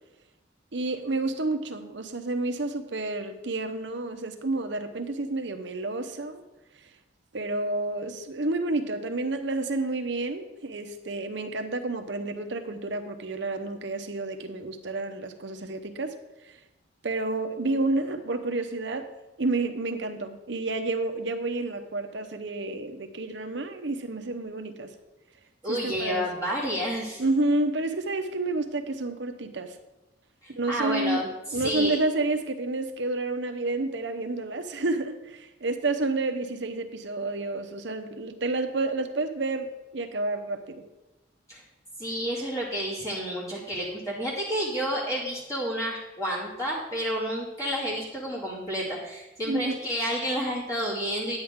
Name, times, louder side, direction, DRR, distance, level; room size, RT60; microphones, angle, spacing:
voice 1, 0.7-6.4 7.3-16.1 16.5-16.6 17.0-19.1 19.4-24.9 25.7-26.2 27.2-29.8 30.5-31.3 31.5-40.8 49.5-49.7, right 2 dB, 70° right, 7 dB, 0.9 m, -30 dB
voice 2, 25.6-27.2 30.4-32.0 41.5-41.6 42.0-51.4, equal, 15° left, -6 dB, 2.3 m, -30 dB
10.0 x 8.9 x 3.7 m, 1.0 s
head